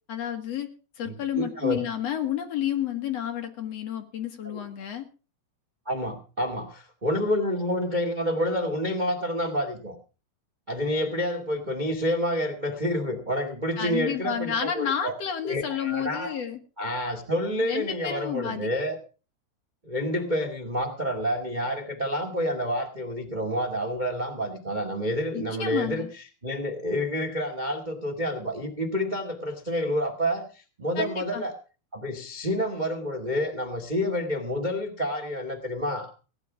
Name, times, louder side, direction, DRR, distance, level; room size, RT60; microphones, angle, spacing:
voice 1, 0.1-0.7 1.0-5.1 13.8-16.6 17.6-18.7 25.3-26.1 31.0-31.4, left 9 dB, 50° left, 6 dB, 2.1 m, -30 dB
voice 2, 1.0-1.8 4.5-4.7 5.8-9.9 10.7-15.1 15.4-16.3 16.8-19.0 19.8-26.0 26.4-31.5 31.9-36.1, equal, 70° right, 5 dB, 0.4 m, -28 dB
17.5 x 9.8 x 6.1 m, 0.36 s
omnidirectional pair, 5.0 m